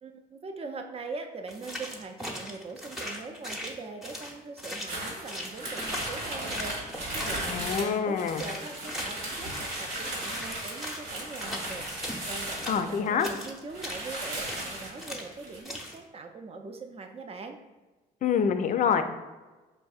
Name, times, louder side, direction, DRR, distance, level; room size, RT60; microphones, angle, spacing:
voice 1, 0.0-17.6, right 3 dB, 35° right, 5 dB, 0.5 m, -41 dB
sound 1, 1.5-8.0 8.3-12.2 12.5-14.7 15.0-15.3 15.6-16.0, left 1 dB, ahead, 0.8 m, -39 dB
sound 2, 4.9-13.1 13.4-13.5 13.7-15.6, right 1 dB, 75° right, 1.4 m, -36 dB
voice 2, 7.5-8.4 12.7-13.3 18.2-19.0, left 7 dB, 45° left, 9 dB, 0.4 m, -26 dB
5.1 x 2.6 x 2.4 m, 1.2 s
supercardioid pair, 60°, 18 cm